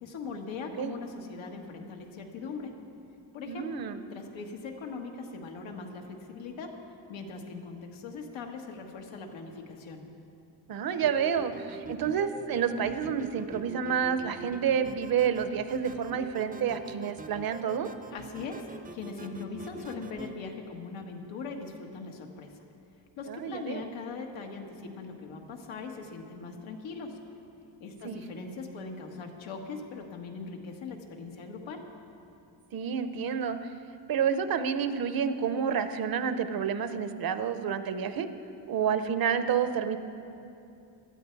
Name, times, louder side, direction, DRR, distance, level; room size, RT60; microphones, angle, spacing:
voice 1, 0.0-2.7 3.3-3.8 4.1-6.7 7.1-10.0 18.1-22.5 23.2-27.2 27.8-31.8, left 4 dB, 90° left, 2 dB, 1.8 m, -40 dB
voice 2, 3.5-4.0 10.7-17.9 23.3-23.9 28.0-28.2 32.7-33.6 34.1-38.3 38.7-40.0, right 7 dB, 50° right, 10 dB, 0.7 m, -29 dB
sound 1, 11.0-20.3, right 3 dB, 20° right, 0.6 m, -44 dB
18.0 x 12.5 x 4.6 m, 2.7 s
cardioid pair, 170°, 45 cm